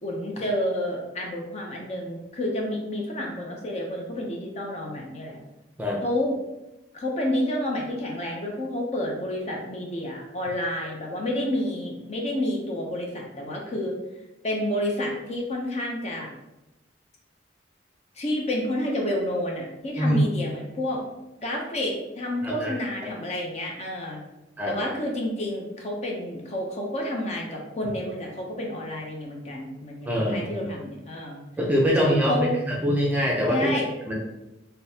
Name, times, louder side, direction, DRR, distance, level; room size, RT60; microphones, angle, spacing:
voice 1, 0.0-5.4 6.0-6.4 6.9-14.0 14.4-16.3 18.2-21.0 21.4-24.2 24.7-31.4 32.0-32.6 33.5-33.9, left 1 dB, 35° left, -1 dB, 0.6 m, -29 dB
voice 2, 22.4-22.7 23.0-23.1 24.6-24.8 30.1-30.7 31.6-32.3 32.7-33.7 34.1-34.2, equal, 10° right, -2 dB, 0.5 m, -24 dB
3.6 x 2.7 x 2.7 m, 0.96 s
head